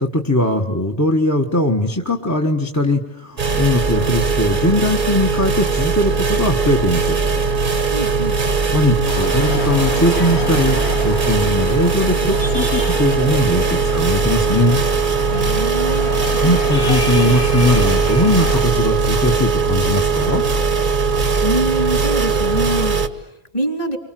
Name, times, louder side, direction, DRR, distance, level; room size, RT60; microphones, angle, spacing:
voice 1, 0.0-7.2 8.7-10.8 11.0-14.8 16.4-20.4, left 1 dB, 15° left, 4 dB, 1.4 m, -19 dB
sound 1, 3.4-23.1, right 4 dB, 50° right, 1.4 m, -19 dB
voice 2, 7.9-8.4 15.3-16.1 21.4-24.0, right 1 dB, 35° left, 5 dB, 3.1 m, -24 dB
sound 2, 9.0-18.6, left 2 dB, 90° left, 2.6 m, -29 dB
30.0 x 24.5 x 7.7 m, 0.86 s
omnidirectional pair, 1.1 m